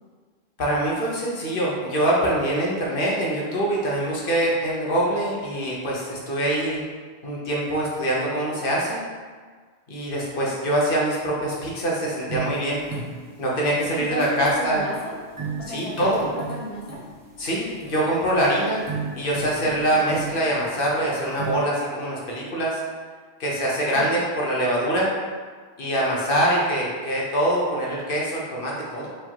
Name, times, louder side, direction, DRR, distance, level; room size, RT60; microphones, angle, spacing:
voice 1, 0.6-6.8 7.2-9.0 9.9-12.8 13.4-14.8 15.7-16.3 17.4-18.8 19.2-22.8 23.4-25.1 25.8-29.1, right 1 dB, 60° left, -4 dB, 1.1 m, -24 dB
sound 1, 12.3-21.6, right 4 dB, 25° right, 0.5 m, -37 dB
voice 2, 14.1-15.2 15.6-17.0 19.6-20.0 23.9-24.0, equal, 40° left, -4 dB, 0.7 m, -33 dB
4.6 x 3.6 x 2.9 m, 1.5 s
omnidirectional pair, 1.1 m